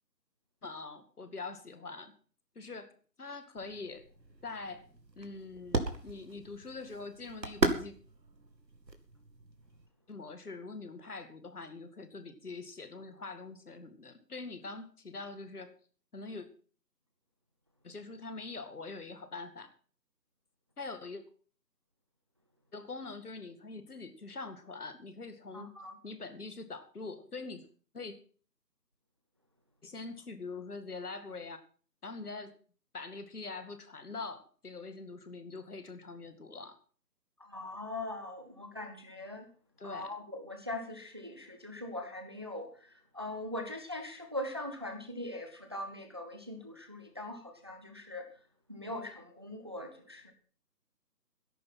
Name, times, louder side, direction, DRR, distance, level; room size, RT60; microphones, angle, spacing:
voice 1, 0.6-2.1 2.6-4.1 4.4-4.9 5.2-7.9 10.1-15.7 16.1-16.5 17.8-19.7 20.8-21.2 22.7-25.7 26.0-27.7 27.9-28.2 29.8-31.6 32.0-32.5 32.9-36.8 39.8-40.1, left 3 dB, 60° left, 9 dB, 2.4 m, -44 dB
sound 1, 3.6-9.9, right 2 dB, 80° right, 2.4 m, -37 dB
voice 2, 25.5-25.9 37.4-39.4 39.8-48.3 48.7-50.3, left 1 dB, 15° right, 5 dB, 0.8 m, -41 dB
13.5 x 11.0 x 5.8 m, 0.41 s
figure-of-eight pair, 155°, 50 cm